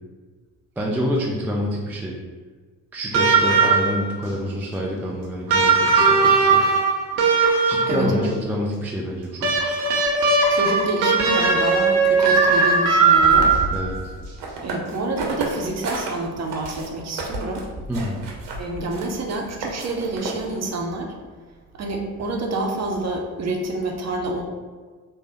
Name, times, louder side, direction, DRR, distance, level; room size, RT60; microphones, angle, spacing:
voice 1, 0.8-2.2 2.9-6.7 7.7-9.8 13.7-13.9 17.9-18.2, equal, 5° right, -3 dB, 0.3 m, -27 dB
sound 1, 3.1-4.1 5.5-8.1 9.4-13.9 15.2-15.3, right 4 dB, 85° right, 0.6 m, -18 dB
voice 2, 7.9-8.3 10.5-13.5 14.6-17.6 18.6-21.1 21.8-24.4, right 2 dB, 35° right, 1 dB, 0.7 m, -27 dB
sound 2, 13.2-16.1 16.5-20.7, right 2 dB, 60° right, 0.9 m, -31 dB
3.3 x 2.0 x 4.0 m, 1.5 s
hypercardioid pair, 50°, 49 cm